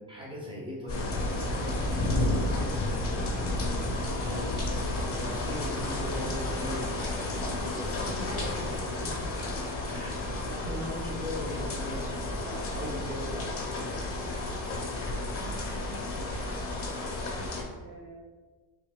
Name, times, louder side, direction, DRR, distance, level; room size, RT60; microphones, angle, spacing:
voice 1, 0.0-2.6 4.2-9.5 9.9-14.0 14.2-14.4, left 1 dB, 10° right, -4 dB, 1.0 m, -41 dB
sound 1, 0.9-17.6, left 2 dB, 25° left, 0.9 m, -31 dB
voice 2, 4.3-4.8 10.2-10.4 15.3-16.2 17.8-18.2, right 2 dB, 25° right, -2 dB, 0.4 m, -47 dB
3.4 x 2.9 x 3.5 m, 1.4 s
cardioid pair, 135°, 50 cm